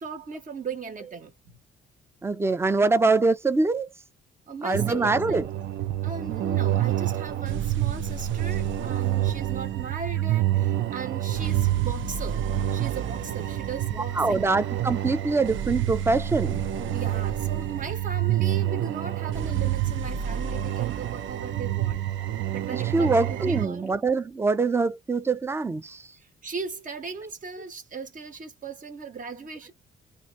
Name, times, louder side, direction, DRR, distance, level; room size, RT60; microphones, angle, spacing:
voice 1, 0.0-1.3 4.5-5.5 6.0-12.4 12.7-14.5 16.9-22.0 22.5-23.9 26.2-29.7, right 5 dB, 40° right, 1.3 m, -37 dB
voice 2, 2.2-3.9 4.6-5.5 14.2-16.6 22.7-26.1, right 3 dB, 10° right, 0.5 m, -24 dB
sound 1, 4.7-23.7, right 12 dB, 75° right, 0.6 m, -28 dB
2.8 x 2.6 x 3.2 m
cardioid pair, 90°, 20 cm